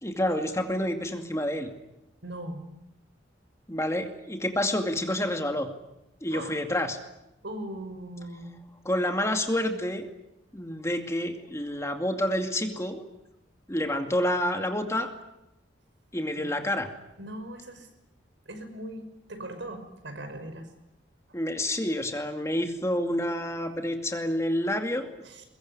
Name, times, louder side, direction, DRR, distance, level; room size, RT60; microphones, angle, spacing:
voice 1, 0.0-1.7 3.7-5.7 6.2-7.0 8.8-10.1 10.5-13.0 13.7-15.1 16.1-16.9 21.3-25.2, left 1 dB, 15° left, 5 dB, 2.4 m, -28 dB
voice 2, 2.2-2.6 6.3-6.6 7.4-8.6 16.4-16.5 17.2-17.9 18.5-20.7 25.2-25.4, right 1 dB, 80° right, 7 dB, 5.8 m, -39 dB
23.0 x 22.0 x 9.7 m, 0.88 s
head